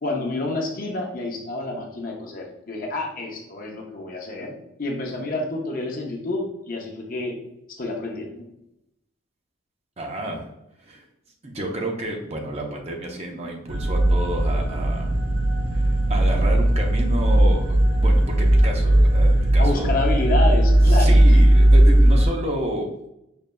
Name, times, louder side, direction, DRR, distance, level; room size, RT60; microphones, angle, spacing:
voice 1, 0.0-7.4 7.8-8.5 19.6-21.2, left 2 dB, 45° left, 1 dB, 0.6 m, -28 dB
voice 2, 10.0-10.5 10.8-11.0 11.4-15.2 15.7-19.9 20.9-22.9, right 1 dB, 30° right, 1 dB, 0.6 m, -30 dB
sound 1, 13.7-22.3, right 1 dB, 85° right, 0.8 m, -17 dB
5.1 x 3.1 x 2.2 m, 0.85 s
head